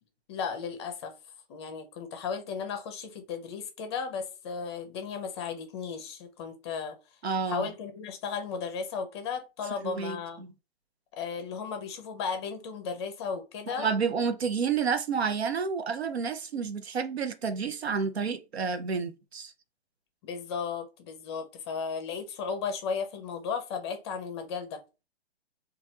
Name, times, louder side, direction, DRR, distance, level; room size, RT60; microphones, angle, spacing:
voice 1, 0.3-1.1 1.5-7.0 7.4-10.4 11.1-13.9 20.2-24.8, left 6 dB, 25° left, 0.5 m, -35 dB
voice 2, 7.2-7.7 9.8-10.5 13.7-19.5, right 6 dB, 80° right, 0.6 m, -30 dB
3.0 x 2.3 x 2.7 m
figure-of-eight pair, 125°, 31 cm